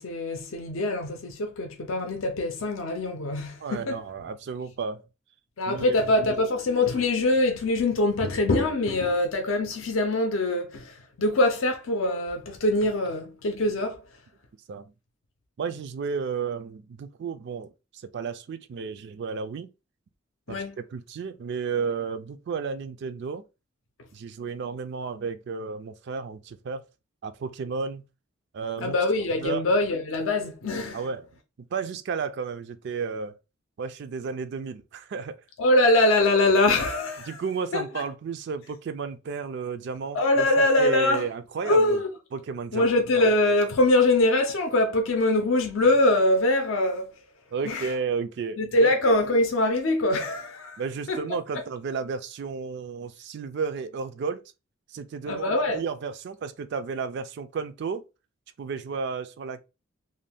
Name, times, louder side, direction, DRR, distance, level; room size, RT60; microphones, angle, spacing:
voice 1, 0.0-4.0 5.6-14.0 20.5-20.7 28.8-31.0 35.6-37.4 37.7-37.8 40.1-41.2 41.6-42.1 42.7-47.1 47.6-47.9 48.6-50.8 51.1-51.2 51.5-51.6 55.3-55.8, left 2 dB, 70° left, 0.5 m, -23 dB
voice 2, 3.6-5.0 5.7-6.0 14.7-14.9 15.6-19.7 20.5-23.4 24.1-26.8 27.2-28.0 28.5-29.0 29.4-29.6 30.9-31.3 31.7-33.4 33.8-35.4 37.3-42.0 42.3-43.2 47.5-49.0 50.8-54.5 54.9-58.1 58.6-59.6, right 5 dB, 55° right, 0.3 m, -33 dB
2.6 x 2.2 x 3.3 m
head